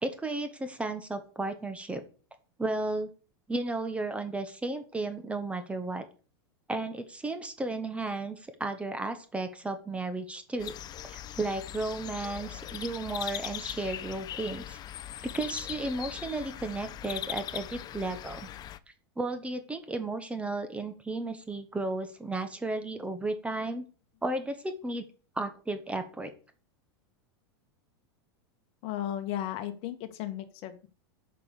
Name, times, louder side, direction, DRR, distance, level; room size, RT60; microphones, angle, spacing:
voice 1, 0.0-2.0 2.6-3.1 3.5-6.0 6.7-10.7 11.0-14.8 15.2-18.5 19.2-23.8 24.2-25.1 25.3-26.3, right 2 dB, 10° right, 8 dB, 1.3 m, -34 dB
sound 1, 10.6-18.8, left 11 dB, 30° left, 0.7 m, -40 dB
voice 2, 28.8-30.9, left 12 dB, 45° left, 9 dB, 1.6 m, -35 dB
9.6 x 5.4 x 6.8 m, 0.38 s
supercardioid pair, 130°, 14 cm